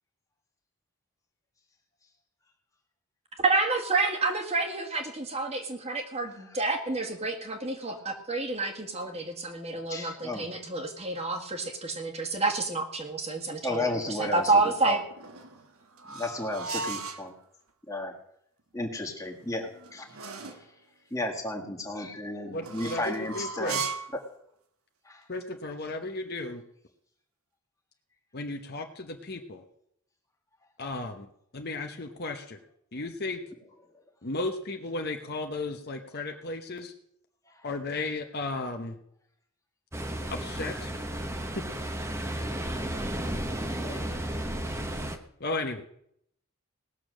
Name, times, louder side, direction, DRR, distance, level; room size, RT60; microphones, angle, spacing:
voice 1, 3.4-13.8 14.3-15.0, right 3 dB, 30° right, 4 dB, 1.7 m, -29 dB
voice 2, 6.3-6.6 9.7-10.5 13.6-15.0 16.1-17.3 17.9-18.2 18.7-20.7 21.1-23.8 24.1-24.2 25.0-25.3 33.9-34.0 37.4-37.6 43.8-44.2, left 1 dB, 15° left, 1 dB, 1.7 m, -34 dB
sound 1, 15.1-17.3 19.3-20.7 22.6-24.2, right 5 dB, 70° right, 1.4 m, -37 dB
voice 3, 22.5-23.8 25.3-26.6 28.3-29.6 30.8-31.3 31.5-32.6 32.9-33.4 34.2-36.9 37.6-39.0 40.3-40.9 45.4-45.8, left 2 dB, 45° left, 4 dB, 1.0 m, -34 dB
Ocean, 39.9-45.2, right 1 dB, 10° right, 0.9 m, -33 dB
18.5 x 6.9 x 6.3 m, 0.72 s
head